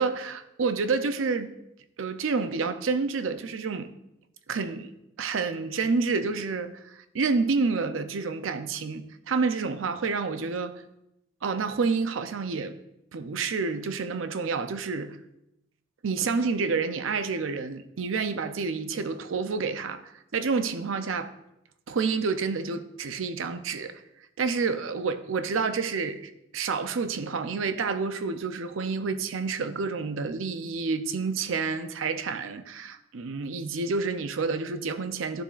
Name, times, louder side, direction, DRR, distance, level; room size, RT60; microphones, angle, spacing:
voice 1, 0.0-1.5 2.0-3.9 4.5-4.9 5.2-10.8 11.4-12.8 13.1-15.2 16.0-21.3 21.9-24.0 24.4-35.4, right 4 dB, 80° right, 0.5 m, -29 dB
11.5 x 7.0 x 2.4 m
head